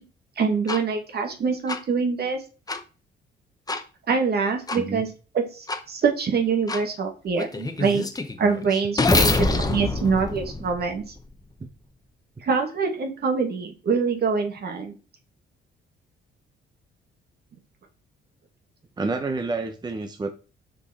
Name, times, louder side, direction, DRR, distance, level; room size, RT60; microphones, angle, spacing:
voice 1, 0.4-2.4 4.1-5.1 5.3-8.1 8.4-11.0 12.4-15.0, right 5 dB, 55° right, 4 dB, 1.8 m, -25 dB
sound 1, 0.7-0.8 1.7-1.8 2.7-2.8 3.7-3.8 4.7-4.8 5.7-5.8 6.7-6.8 7.4-11.3, left 3 dB, 20° left, 1.0 m, -25 dB
voice 2, 4.7-5.0 11.6-11.7 19.0-20.3, right 3 dB, 20° right, 7 dB, 0.8 m, -29 dB
5.6 x 5.0 x 4.2 m, 0.35 s
cardioid pair, 90°, 20 cm